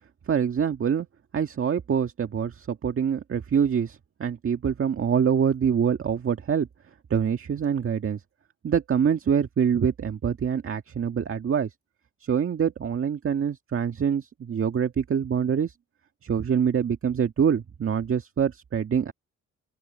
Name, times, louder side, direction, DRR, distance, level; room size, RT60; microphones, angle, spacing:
voice 1, 0.3-1.1 1.3-6.7 7.1-8.2 8.6-11.7 12.2-15.7 16.2-19.1, right 7 dB, 45° right, 1.9 m, -25 dB
open air
cardioid pair, 90°, 30 cm